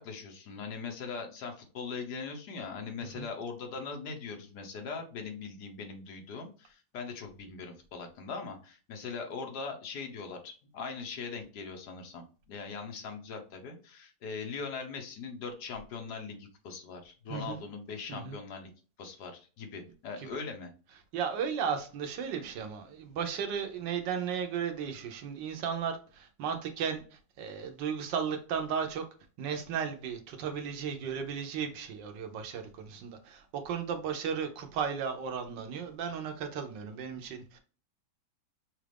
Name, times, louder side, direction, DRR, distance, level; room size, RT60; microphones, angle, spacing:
voice 1, 0.0-18.7 19.0-20.7, left 5 dB, 70° left, 1.5 m, -41 dB
voice 2, 21.1-29.0 29.4-37.6, right 7 dB, 90° right, 1.5 m, -35 dB
6.3 x 2.5 x 3.3 m
omnidirectional pair, 1.9 m